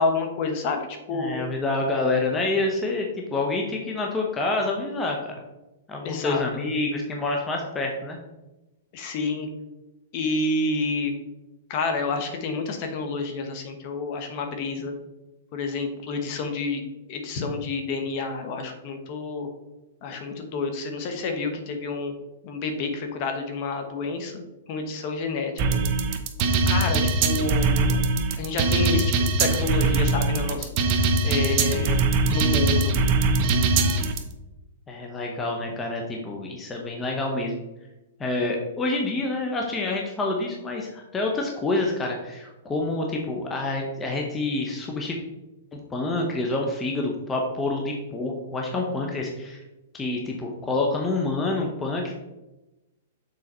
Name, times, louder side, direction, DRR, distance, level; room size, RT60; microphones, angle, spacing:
voice 1, 0.0-1.4 6.0-6.4 8.9-9.5 10.1-11.1 11.7-14.9 15.5-16.8 17.1-19.5 20.0-22.1 22.4-24.4 24.7-25.8 26.7-28.0 28.4-30.7 31.2-32.9, left 3 dB, 40° left, 5 dB, 1.1 m, -29 dB
voice 2, 1.1-5.3 5.9-8.2 34.9-37.5 38.2-45.2 45.7-49.6 49.9-52.1, left 2 dB, 15° left, 0 dB, 0.8 m, -27 dB
sound 1, 25.6-34.2, right 3 dB, 40° right, 0.8 m, -22 dB
6.5 x 4.0 x 4.3 m, 1.0 s
hypercardioid pair, 145°, 0 cm